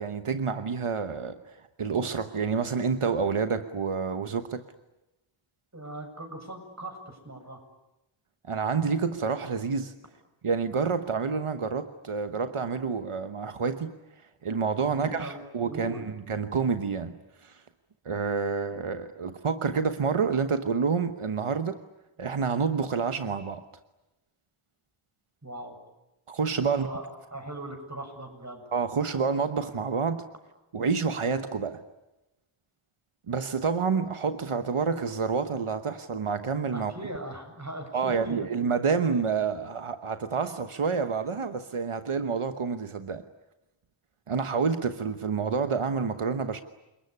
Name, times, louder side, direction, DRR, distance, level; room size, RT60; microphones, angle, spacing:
voice 1, 0.0-4.6 8.4-9.9 10.4-14.0 14.4-16.0 16.3-17.6 18.0-21.8 22.2-23.6 26.3-26.9 28.7-30.3 30.7-31.8 33.3-36.9 37.9-43.2 44.3-46.6, right 5 dB, 85° right, 9 dB, 1.2 m, -28 dB
voice 2, 5.7-7.6 14.8-16.0 25.4-25.8 26.6-28.6 36.7-38.5, right 1 dB, 35° right, 5 dB, 7.6 m, -39 dB
29.0 x 20.0 x 9.8 m, 0.98 s
wide cardioid pair, 45°, 50 cm